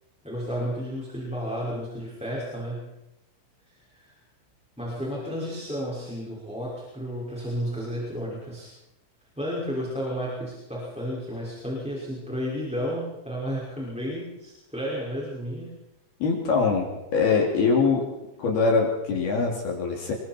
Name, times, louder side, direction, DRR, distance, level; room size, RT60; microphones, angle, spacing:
voice 1, 0.2-2.9 3.9-4.1 4.8-8.7 9.4-15.7, equal, ahead, -6 dB, 5.2 m, -32 dB
voice 2, 16.2-18.0 18.4-20.1, left 4 dB, 60° left, 0 dB, 4.9 m, -23 dB
28.5 x 22.0 x 4.6 m, 0.93 s
omnidirectional pair, 5.2 m